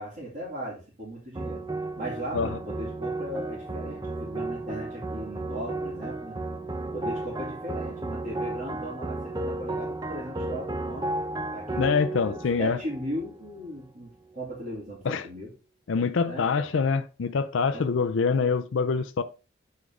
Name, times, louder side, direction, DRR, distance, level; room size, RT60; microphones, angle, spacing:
voice 1, 0.0-1.6 2.0-6.4 6.9-11.1 11.5-15.5 16.3-16.5 17.7-17.9, equal, 40° right, 2.9 m, -37 dB
sound 1, 1.4-13.8, right 2 dB, 20° right, 0.6 m, -34 dB
voice 2, 11.8-12.8 15.1-15.3 15.9-19.2, left 5 dB, 70° left, 0.4 m, -25 dB
7.2 x 4.8 x 3.7 m
head